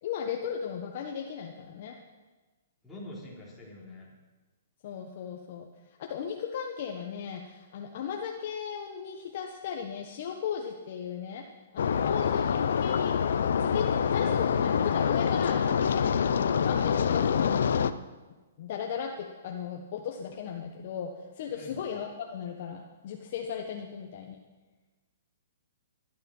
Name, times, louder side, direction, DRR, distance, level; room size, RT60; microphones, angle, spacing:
voice 1, 0.0-2.0 4.8-5.7 6.0-11.5 11.7-17.7 18.6-24.4, left 7 dB, 45° left, 2 dB, 1.4 m, -36 dB
voice 2, 2.8-4.1 11.9-12.2 21.5-21.8, left 1 dB, ahead, -8 dB, 3.7 m, -45 dB
sound 1, 11.8-17.9, left 7 dB, 70° left, 0.8 m, -26 dB
19.5 x 11.5 x 5.6 m, 1.2 s
hypercardioid pair, 165°, 0 cm